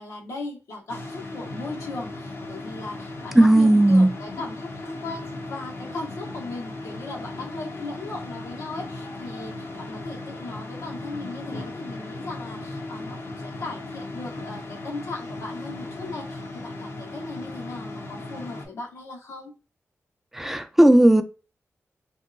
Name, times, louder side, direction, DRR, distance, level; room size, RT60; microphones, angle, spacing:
voice 1, 0.0-19.5, left 2 dB, 85° left, 1.1 m, -37 dB
sound 1, 0.9-18.7, left 2 dB, 55° left, 0.6 m, -37 dB
voice 2, 3.3-4.1 20.3-21.2, right 1 dB, 5° right, 0.4 m, -15 dB
2.9 x 2.7 x 2.6 m
cardioid pair, 80°, 5 cm